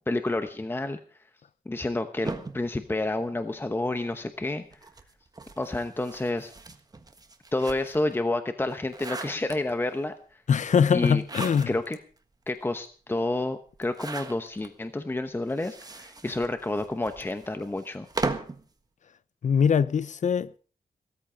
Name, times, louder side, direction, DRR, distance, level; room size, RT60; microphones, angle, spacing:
voice 1, 0.1-1.0 1.7-4.6 5.6-6.5 7.5-10.1 10.9-11.2 11.7-12.0 12.5-18.1, left 2 dB, 15° left, 1.0 m, -29 dB
sound 1, 2.2-3.8 4.7-8.1 8.6-10.0 11.0-12.0 12.5-12.6 12.8-12.9 13.8-14.7 15.4-18.6, right 3 dB, 25° right, 1.5 m, -38 dB
voice 2, 10.5-11.7 19.4-20.6, left 7 dB, 50° left, 0.7 m, -22 dB
17.0 x 13.5 x 5.1 m
wide cardioid pair, 130°, 15 cm